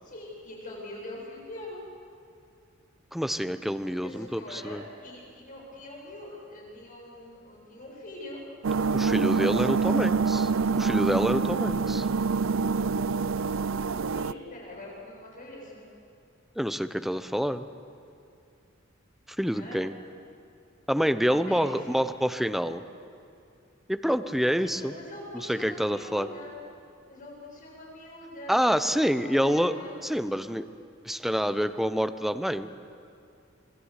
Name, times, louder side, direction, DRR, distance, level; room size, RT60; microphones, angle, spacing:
voice 1, 0.0-1.8 4.0-8.4 14.1-15.9 19.5-19.8 21.3-22.0 24.2-26.5 27.1-30.0, left 1 dB, 45° left, -2 dB, 7.7 m, -43 dB
voice 2, 3.1-4.8 8.9-12.1 16.6-17.6 19.4-19.9 20.9-22.8 23.9-24.9 25.5-26.3 28.5-29.7 30.0-30.6 31.0-32.7, equal, ahead, 10 dB, 0.8 m, -27 dB
sound 1, 8.6-14.3, right 5 dB, 75° right, 0.5 m, -26 dB
27.0 x 21.5 x 8.2 m, 2.5 s
head